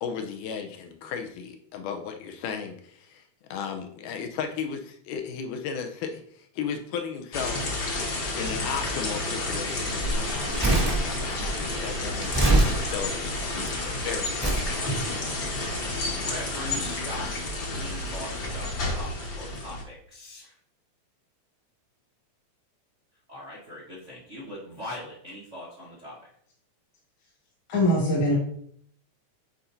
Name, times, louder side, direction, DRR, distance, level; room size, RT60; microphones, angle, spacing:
voice 1, 0.0-3.2 3.5-7.6 8.3-13.2 13.6-15.2, left 6 dB, 85° left, 4 dB, 2.3 m, -35 dB
sound 1, 7.3-19.8, left 2 dB, 50° left, 1.3 m, -30 dB
Crumpling crinkling, 10.4-13.7 14.4-14.7 15.5-15.6, right 2 dB, 20° right, 0.4 m, -24 dB
voice 2, 16.1-20.6 23.3-26.3, left 1 dB, 85° right, -5 dB, 0.6 m, -41 dB
voice 3, 27.7-28.4, equal, 65° left, -5 dB, 3.1 m, -22 dB
9.1 x 4.3 x 2.7 m, 0.64 s
omnidirectional pair, 3.6 m